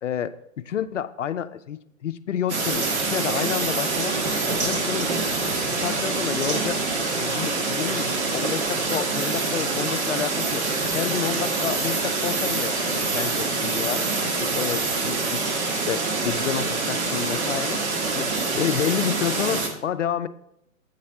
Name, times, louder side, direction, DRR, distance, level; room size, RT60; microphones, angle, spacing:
voice 1, 0.0-4.2 4.6-5.1 5.4-5.5 5.8-6.8 7.2-10.7 10.9-20.3, left 9 dB, 60° left, 13 dB, 0.6 m, -30 dB
sound 1, 2.5-19.7, right 3 dB, 50° right, 1.7 m, -25 dB
8.2 x 4.2 x 5.7 m, 0.80 s
figure-of-eight pair, 130°, 42 cm